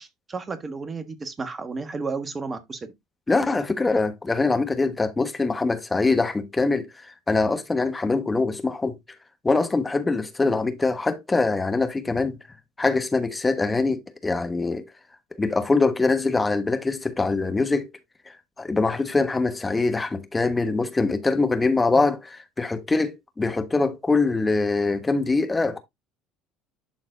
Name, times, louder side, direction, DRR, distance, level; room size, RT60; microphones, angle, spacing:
voice 1, 0.0-2.9, right 4 dB, 30° right, 1.3 m, -32 dB
voice 2, 3.3-9.0 9.4-12.4 12.8-14.9 15.4-17.9 18.6-25.8, left 3 dB, 15° left, 1.2 m, -23 dB
11.5 x 4.0 x 2.5 m
hypercardioid pair, 65°, 0 cm